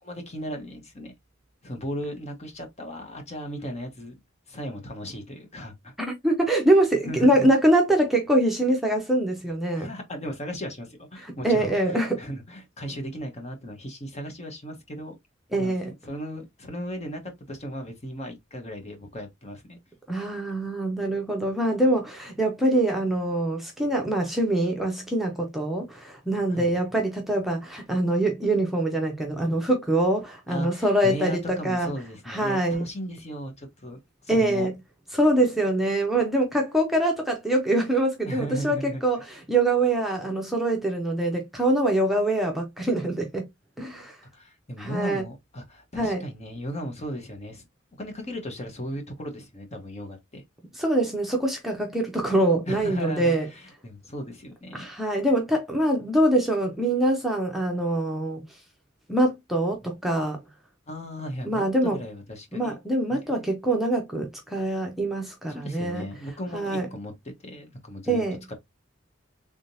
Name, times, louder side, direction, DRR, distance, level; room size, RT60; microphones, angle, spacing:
voice 1, 0.0-1.1 1.6-4.2 4.5-5.9 7.0-7.5 9.7-15.1 15.6-19.8 26.5-26.8 30.5-34.7 38.3-39.0 44.3-47.6 48.0-50.4 52.7-54.9 59.8-59.9 60.9-62.8 63.1-63.4 65.5-67.1 67.4-68.2 68.5-68.6, equal, 35° left, 1.2 m, -36 dB
voice 2, 6.0-9.9 11.2-12.2 15.5-15.9 20.1-31.9 32.3-32.8 34.3-34.7 35.1-43.5 43.8-44.2 44.8-45.2 45.9-46.2 50.8-53.5 54.7-58.5 59.1-60.4 61.4-62.0 62.5-66.0 66.5-66.9 68.1-68.4, right 1 dB, ahead, 0.8 m, -24 dB
3.6 x 3.6 x 2.7 m
head